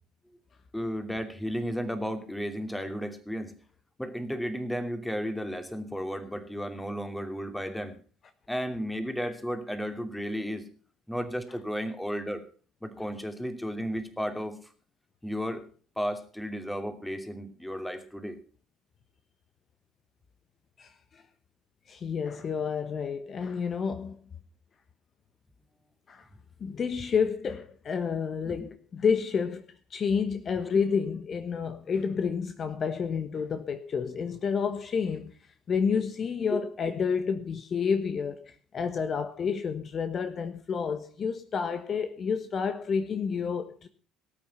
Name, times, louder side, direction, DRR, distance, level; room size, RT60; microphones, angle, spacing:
voice 1, 0.7-3.5 4.0-7.9 8.5-10.7 11.1-12.4 12.8-14.6 15.2-15.6 16.0-18.3 28.5-28.6 36.5-36.6, equal, 5° left, 2.8 m, -33 dB
voice 2, 20.8-21.2 21.9-24.2 26.1-26.3 26.6-35.3 35.7-43.9, left 6 dB, 40° left, 1.2 m, -30 dB
18.0 x 8.8 x 5.7 m
figure-of-eight pair, 60°, 0 cm